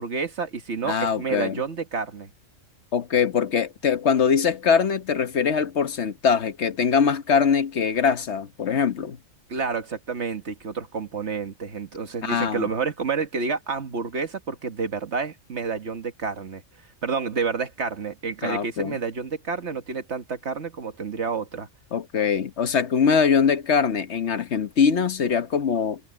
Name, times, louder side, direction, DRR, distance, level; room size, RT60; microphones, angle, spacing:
voice 1, 0.0-2.3 9.5-16.6 17.0-21.7, right 5 dB, 60° right, 1.7 m, -29 dB
voice 2, 0.8-1.6 2.9-9.2 12.2-12.7 18.4-19.0 21.9-26.0, left 6 dB, 60° left, 1.3 m, -22 dB
omnidirectional pair, 1.4 m